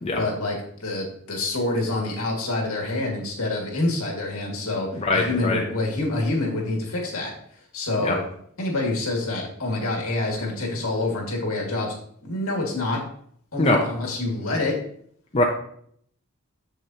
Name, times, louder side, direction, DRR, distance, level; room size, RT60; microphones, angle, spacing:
voice 1, 0.2-7.3 7.7-8.2 8.6-11.9 12.2-13.0 13.5-14.8, left 2 dB, 70° left, -1 dB, 1.9 m, -27 dB
voice 2, 4.9-5.6 7.9-8.2 13.6-13.8 15.3-15.4, left 2 dB, 25° left, 0 dB, 0.6 m, -22 dB
7.0 x 6.3 x 2.8 m, 0.65 s
head